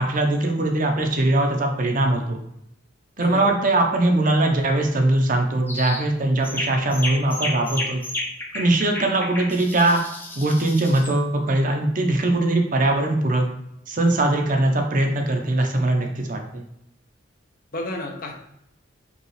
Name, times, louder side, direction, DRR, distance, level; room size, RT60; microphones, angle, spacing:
voice 1, 0.0-2.4 3.2-8.0 8.5-10.0 10.4-13.4 13.9-16.6, right 2 dB, 45° right, 3 dB, 0.6 m, -21 dB
voice 2, 3.2-3.5 8.9-9.0 17.7-18.3, left 1 dB, 45° left, 2 dB, 0.7 m, -31 dB
sound 1, 5.7-6.0 6.4-11.2, left 1 dB, 10° left, 0.5 m, -32 dB
5.2 x 2.3 x 3.2 m, 0.79 s
head